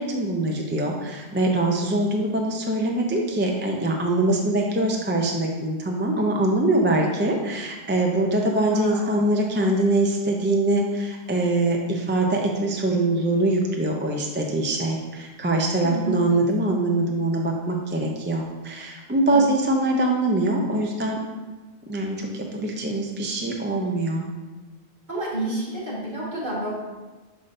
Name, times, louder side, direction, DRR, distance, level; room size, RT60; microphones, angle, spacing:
voice 1, 0.0-21.2 21.9-24.3, right 2 dB, 15° right, 0 dB, 0.4 m, -23 dB
voice 2, 8.7-9.1 15.8-16.3 19.3-19.4 25.1-26.7, right 2 dB, 50° right, -7 dB, 2.0 m, -29 dB
6.5 x 5.6 x 2.6 m, 1.2 s
omnidirectional pair, 1.0 m